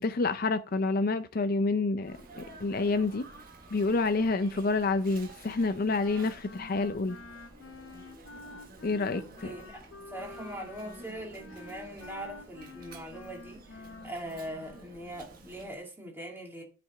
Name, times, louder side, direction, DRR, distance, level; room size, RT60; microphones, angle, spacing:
voice 1, 0.0-3.3 3.7-7.2 8.8-9.6, left 3 dB, 50° left, 0.5 m, -28 dB
Sneeze, 2.0-15.8, right 2 dB, 45° right, 1.6 m, -51 dB
Wind instrument woodwind instrument, 5.9-14.9, left 2 dB, 85° left, 0.9 m, -49 dB
voice 2, 9.0-16.6, right 1 dB, 10° right, 2.3 m, -42 dB
9.5 x 5.2 x 3.5 m
head